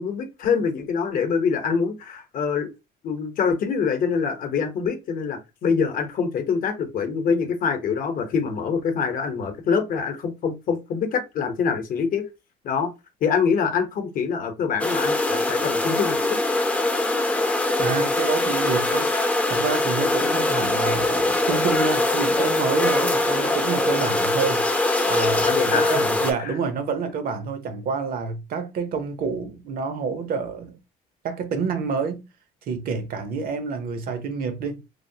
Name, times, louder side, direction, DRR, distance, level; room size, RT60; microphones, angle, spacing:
voice 1, 0.0-2.7 3.0-12.3 12.6-12.9 13.2-16.2 25.4-26.5, left 6 dB, 55° left, 0.8 m, -25 dB
sound 1, 14.8-26.3, left 2 dB, 10° left, 0.4 m, -22 dB
voice 2, 17.8-19.1 19.5-30.8 31.2-32.3 32.7-34.8, right 5 dB, 60° right, 0.7 m, -28 dB
3.2 x 2.0 x 2.7 m
cardioid pair, 110°, 17 cm